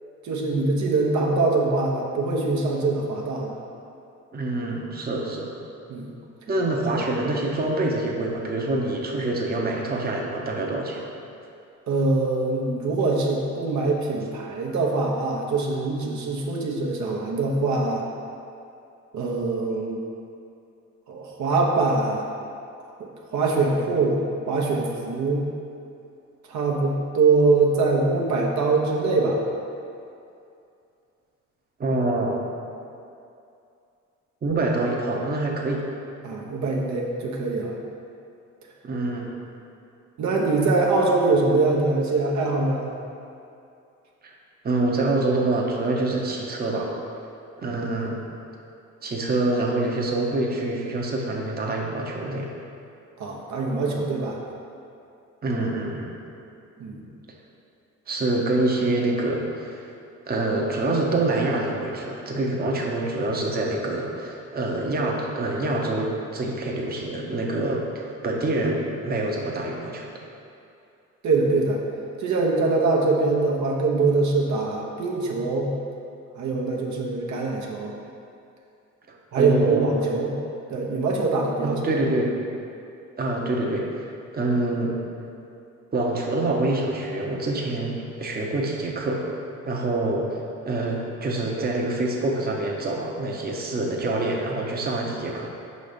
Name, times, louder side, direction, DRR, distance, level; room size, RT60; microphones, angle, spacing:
voice 1, 0.2-3.5 5.9-6.1 11.9-18.0 19.1-20.0 21.1-22.2 23.3-25.5 26.5-29.4 36.2-37.7 40.2-42.9 53.2-54.4 56.8-57.0 71.2-71.8 72.2-75.7 76.4-77.9 79.3-80.3 80.7-81.8, right 3 dB, 70° right, -2 dB, 0.9 m, -23 dB
voice 2, 4.3-5.5 6.5-11.0 31.8-32.4 34.4-35.8 38.8-39.4 44.2-44.3 44.6-46.9 47.6-48.2 49.0-52.5 55.4-56.1 58.1-59.9 60.3-70.1 79.1-79.9 81.6-82.4 83.2-85.0 85.9-89.2 89.7-90.4 90.6-95.5, right 2 dB, 30° right, -1 dB, 0.8 m, -26 dB
5.4 x 4.1 x 5.1 m, 2.6 s
cardioid pair, 90°, 30 cm